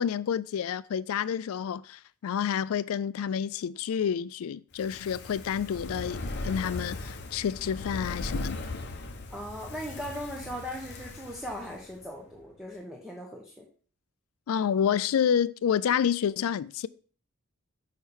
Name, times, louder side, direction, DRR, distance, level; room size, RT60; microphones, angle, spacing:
voice 1, 0.0-8.7 14.5-16.9, left 8 dB, 70° left, 0.3 m, -29 dB
Fire, 4.7-12.1 12.4-12.5, left 2 dB, 50° left, 0.7 m, -38 dB
voice 2, 9.3-13.7, equal, ahead, 0.9 m, -39 dB
6.3 x 5.7 x 3.4 m
head